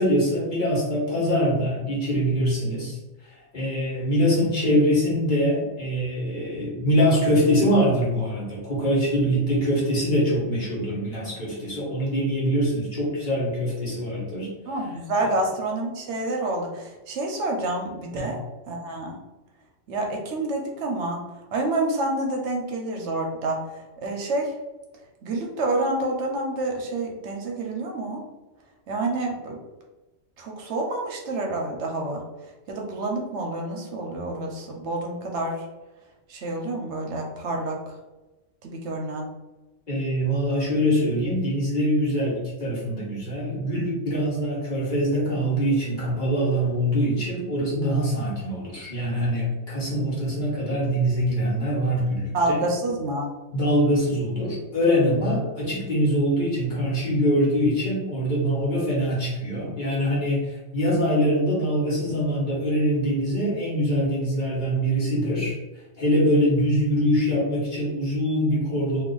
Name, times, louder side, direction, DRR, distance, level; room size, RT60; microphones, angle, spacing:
voice 1, 0.0-3.0 3.2-14.5 15.2-15.3 18.1-18.3 39.9-52.6 53.5-65.6 66.0-69.0, equal, 45° left, -5 dB, 1.0 m, -23 dB
voice 2, 14.7-18.4 18.7-19.2 19.9-21.2 21.5-23.6 24.0-24.5 25.2-28.2 28.9-29.6 30.4-32.2 32.7-35.6 36.3-37.8 38.6-39.3 52.3-53.3, right 2 dB, 70° right, 1 dB, 0.9 m, -28 dB
2.4 x 2.4 x 3.7 m, 1.1 s
omnidirectional pair, 1.3 m